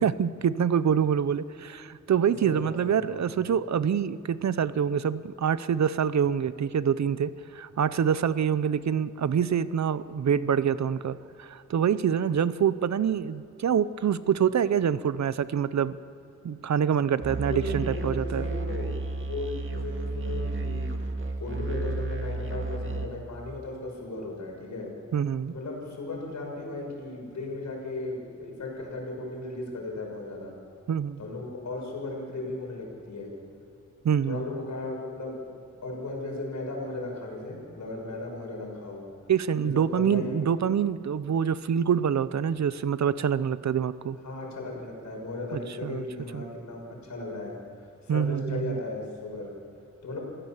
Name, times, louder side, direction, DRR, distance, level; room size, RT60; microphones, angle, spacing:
voice 1, 0.0-16.0 16.4-18.5 25.1-25.5 30.9-31.2 34.0-34.4 39.3-44.2 45.5-46.1 46.3-46.4 48.1-48.8, right 8 dB, 70° right, 15 dB, 0.7 m, -26 dB
voice 2, 2.4-3.2 17.4-18.9 19.3-20.9 21.4-24.9 25.5-30.5 31.2-33.3 34.3-35.4 35.8-39.0 39.6-40.4 44.2-47.5 48.0-49.5 50.0-50.2, left 2 dB, 75° left, 0 dB, 6.3 m, -36 dB
Musical instrument, 17.2-23.1, right 2 dB, 45° right, 1.9 m, -32 dB
27.5 x 16.0 x 7.3 m, 2.8 s
wide cardioid pair, 110°, 29 cm